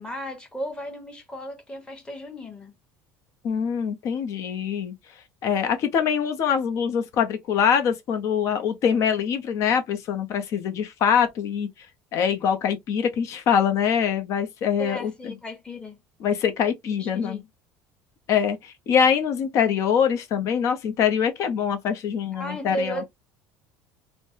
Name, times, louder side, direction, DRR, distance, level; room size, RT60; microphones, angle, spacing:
voice 1, 0.0-2.7 14.8-16.0 16.8-17.5 22.3-23.0, equal, 15° left, 1.2 m, -34 dB
voice 2, 3.4-4.9 5.4-11.7 12.1-15.3 16.2-17.4 18.3-23.0, left 7 dB, 55° left, 0.7 m, -24 dB
3.2 x 2.1 x 2.7 m
supercardioid pair, 105°, 6 cm